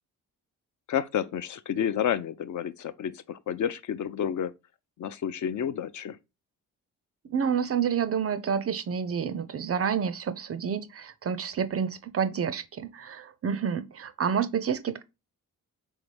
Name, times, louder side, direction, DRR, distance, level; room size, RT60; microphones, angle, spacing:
voice 1, 0.9-4.5 5.0-6.2, left 9 dB, 50° left, 0.4 m, -30 dB
voice 2, 7.2-15.0, right 7 dB, 35° right, 0.4 m, -29 dB
3.9 x 3.5 x 3.2 m
supercardioid pair, 45°, 41 cm